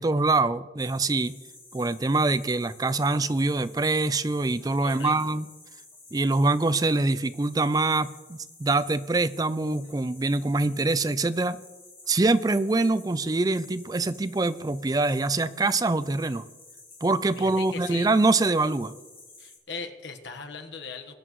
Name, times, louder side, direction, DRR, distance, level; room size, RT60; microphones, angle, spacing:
voice 1, 0.0-1.3 1.7-5.5 6.1-11.6 12.1-16.4 17.0-18.9, right 3 dB, 20° right, 14 dB, 0.4 m, -24 dB
sound 1, 0.8-19.6, left 3 dB, 15° left, 2.3 m, -51 dB
voice 2, 4.8-5.4 17.4-18.1 19.4-21.1, left 4 dB, 75° left, 6 dB, 1.3 m, -39 dB
21.5 x 10.0 x 3.1 m, 1.2 s
head